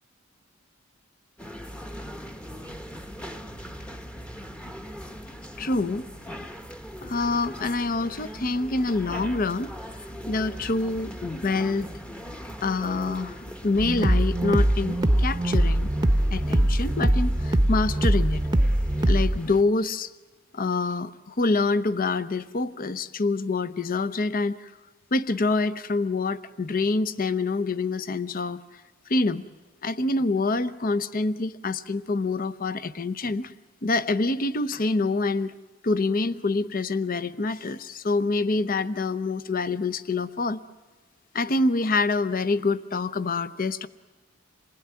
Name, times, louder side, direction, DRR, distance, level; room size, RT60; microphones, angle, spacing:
sound 1, 1.4-19.6, equal, 5° left, 1.0 m, -40 dB
voice 1, 5.6-6.1 7.0-9.7 10.0-11.9 12.6-15.9 16.3-18.4 19.1-20.1 20.5-24.7 25.1-28.8 29.1-29.4 29.8-33.5 33.8-35.5 35.8-40.6 41.3-43.9, left 3 dB, 45° left, 14 dB, 0.8 m, -26 dB
sound 2, 13.8-19.4, right 1 dB, 20° right, 0.8 m, -22 dB
27.5 x 20.0 x 9.7 m, 1.3 s
head